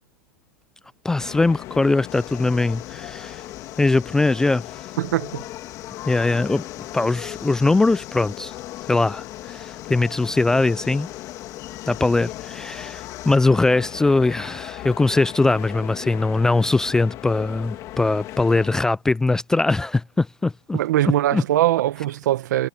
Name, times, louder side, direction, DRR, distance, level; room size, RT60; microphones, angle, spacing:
voice 1, 1.0-3.4 3.8-4.8 6.1-6.7 6.9-8.5 8.9-11.1 11.9-20.8 21.3-21.4, left 3 dB, 5° left, 0.3 m, -21 dB
sound 1, 1.2-18.8, left 15 dB, 35° left, 2.6 m, -37 dB
sound 2, 2.1-13.4, left 16 dB, 70° left, 4.4 m, -46 dB
voice 2, 5.0-5.4 20.7-22.7, right 14 dB, 75° right, 1.3 m, -21 dB
supercardioid pair, 155°, 10 cm